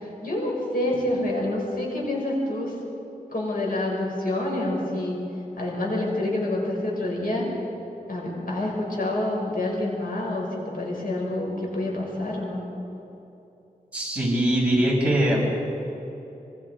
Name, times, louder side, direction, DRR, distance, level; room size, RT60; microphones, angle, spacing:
voice 1, 0.2-2.7 3.3-5.2 5.6-7.5 8.1-12.6, left 1 dB, 65° left, -2 dB, 6.2 m, -27 dB
voice 2, 13.9-15.4, right 1 dB, 10° right, -4 dB, 7.2 m, -22 dB
26.0 x 25.5 x 5.2 m, 2.9 s
wide cardioid pair, 110°, 16 cm